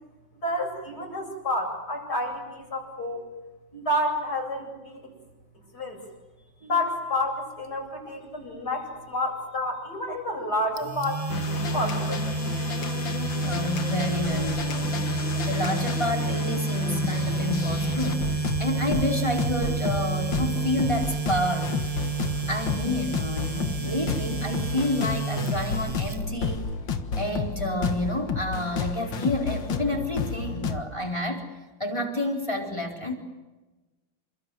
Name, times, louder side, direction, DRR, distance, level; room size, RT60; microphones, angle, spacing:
voice 1, 0.4-3.2 3.7-5.1 5.7-6.0 6.6-12.2, left 1 dB, 55° left, 2 dB, 8.6 m, -29 dB
sound 1, 10.8-26.7, right 3 dB, 20° right, 1.1 m, -30 dB
sound 2, 11.3-30.8, left 4 dB, 75° left, 2.3 m, -31 dB
voice 2, 13.4-15.0 15.5-21.9 22.5-26.6 27.2-31.4 31.8-33.2, left 1 dB, 15° left, 1 dB, 4.4 m, -29 dB
28.5 x 26.0 x 7.8 m, 1.1 s
omnidirectional pair, 2.1 m